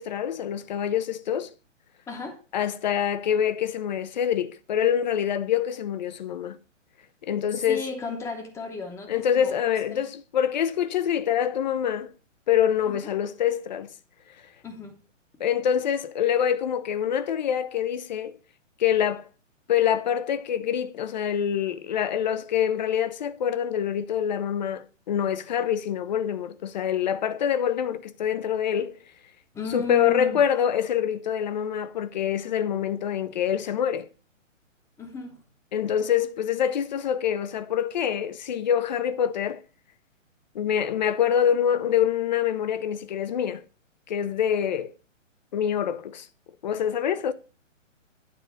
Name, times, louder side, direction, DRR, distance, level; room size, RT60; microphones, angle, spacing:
voice 1, 0.0-1.5 2.5-6.6 7.2-7.8 9.1-12.1 12.5-13.9 15.4-18.4 18.8-19.3 19.7-29.0 29.7-34.1 35.7-39.6 40.5-43.6 44.1-44.9 45.5-46.3 46.6-47.3, left 9 dB, 35° left, 0.5 m, -25 dB
voice 2, 2.1-2.4 7.7-9.5 9.9-10.1 12.9-13.1 14.6-15.0 29.5-30.4 35.0-35.4, left 4 dB, 5° left, 0.8 m, -35 dB
9.2 x 3.9 x 6.3 m
hypercardioid pair, 140°, 39 cm